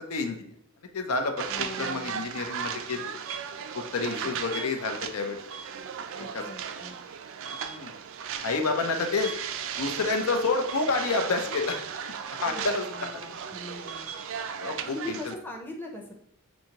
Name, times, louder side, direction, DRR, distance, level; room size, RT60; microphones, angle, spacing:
voice 1, 0.1-0.4 0.9-3.1 3.7-5.4 6.3-6.4 7.4-7.9 8.4-9.3 9.8-11.8 12.4-12.8 14.6-15.2, left 3 dB, 80° left, 5 dB, 0.6 m, -29 dB
voice 2, 1.4-2.2 4.0-4.4 6.1-7.0 12.4-14.2 14.8-16.1, left 1 dB, 10° left, 0 dB, 0.6 m, -41 dB
sound 1, 1.4-15.3, right 7 dB, 60° right, 0.4 m, -36 dB
6.2 x 2.7 x 2.9 m, 0.67 s
head